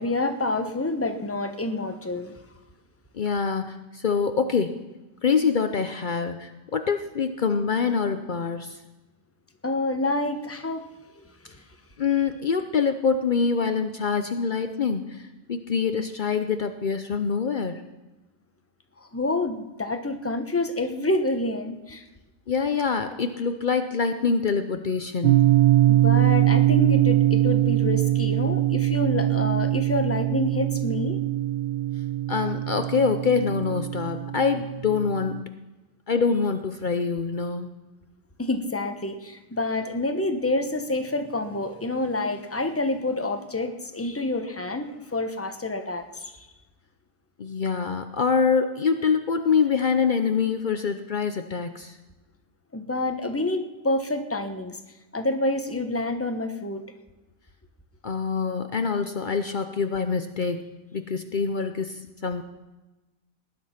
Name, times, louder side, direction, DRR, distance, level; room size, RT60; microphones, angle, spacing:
voice 1, 0.0-2.4 9.6-10.8 11.2-11.3 19.1-22.0 25.8-31.2 38.4-46.3 52.7-54.8 55.1-56.9, left 2 dB, 10° left, 6 dB, 0.8 m, -28 dB
voice 2, 3.1-4.8 5.2-8.8 12.0-15.2 15.5-17.8 22.5-25.5 32.3-35.5 36.1-37.7 47.4-52.0 58.0-62.4, left 5 dB, 75° left, 8 dB, 0.4 m, -25 dB
sound 1, 25.2-35.4, right 14 dB, 90° right, 1.4 m, -22 dB
19.0 x 10.5 x 5.8 m, 1.1 s
omnidirectional pair, 1.9 m